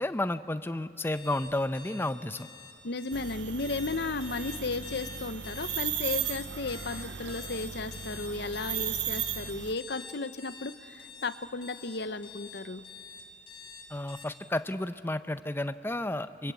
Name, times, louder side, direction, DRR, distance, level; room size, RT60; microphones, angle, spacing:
voice 1, 0.0-2.5 13.9-16.5, left 1 dB, 10° left, 11 dB, 0.6 m, -32 dB
sound 1, 1.1-14.2, left 5 dB, 30° left, 3.8 m, -46 dB
voice 2, 2.8-12.9, left 3 dB, 65° left, 13 dB, 0.8 m, -34 dB
sound 2, 3.1-9.7, right 10 dB, 70° right, 0.6 m, -36 dB
29.5 x 23.5 x 8.3 m, 2.6 s
head